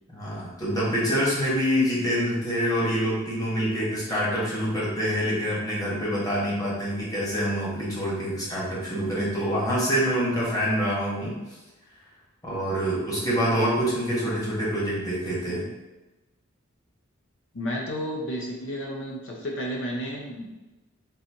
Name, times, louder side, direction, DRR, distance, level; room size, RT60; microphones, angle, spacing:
voice 1, 0.1-11.4 12.4-15.7, equal, 20° left, -7 dB, 1.2 m, -26 dB
voice 2, 17.5-20.5, equal, 60° left, -1 dB, 0.7 m, -32 dB
3.9 x 2.6 x 2.8 m, 1.1 s
head